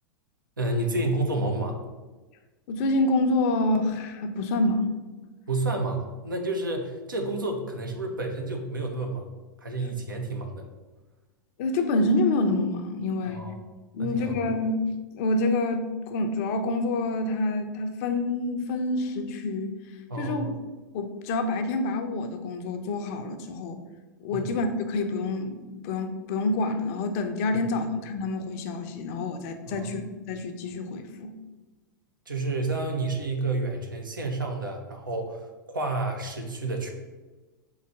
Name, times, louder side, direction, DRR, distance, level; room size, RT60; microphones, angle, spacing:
voice 1, 0.6-1.8 5.5-9.3 9.6-10.6 13.3-13.5 14.0-14.3 20.1-20.5 24.3-24.4 29.7-29.9 32.3-35.4 35.7-36.9, right 2 dB, 80° right, 3 dB, 0.7 m, -30 dB
voice 2, 2.7-4.9 11.6-13.4 13.9-19.8 20.2-20.6 20.9-23.8 24.2-30.0 30.3-31.3, left 2 dB, 45° left, 7 dB, 0.5 m, -27 dB
3.9 x 2.8 x 4.5 m, 1.2 s
figure-of-eight pair, 90°, 11 cm